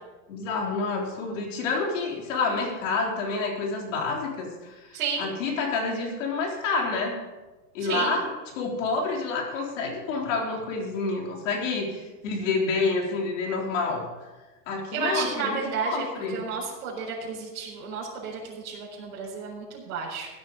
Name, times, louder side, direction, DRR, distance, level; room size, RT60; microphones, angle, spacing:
voice 1, 0.3-7.2 7.7-8.2 8.5-14.0 14.7-16.4, left 3 dB, 55° left, 0 dB, 3.8 m, -28 dB
voice 2, 4.9-5.3 7.8-8.2 14.9-16.0 16.3-20.3, right 5 dB, 65° right, -7 dB, 4.6 m, -32 dB
16.0 x 9.3 x 5.1 m, 1.2 s
supercardioid pair, 165°, 46 cm